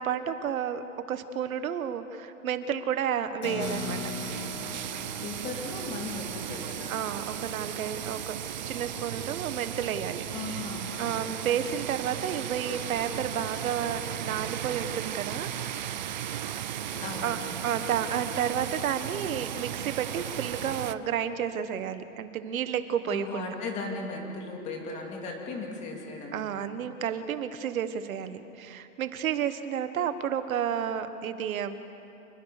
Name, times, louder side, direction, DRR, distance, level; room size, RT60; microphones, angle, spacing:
voice 1, 0.0-4.1 6.9-10.6 11.0-15.8 17.2-23.5 26.3-31.8, right 8 dB, 85° right, 10 dB, 1.7 m, -31 dB
Keyboard (musical), 3.4-9.4, left 6 dB, 40° left, 3.9 m, -42 dB
sound 1, 3.6-20.9, right 10 dB, 35° right, 0.4 m, -36 dB
voice 2, 5.2-7.0 10.3-11.1 16.8-17.5 23.1-26.5, left 3 dB, 15° left, 1 dB, 2.5 m, -37 dB
27.5 x 21.0 x 6.8 m, 2.8 s
supercardioid pair, 180°, 40 cm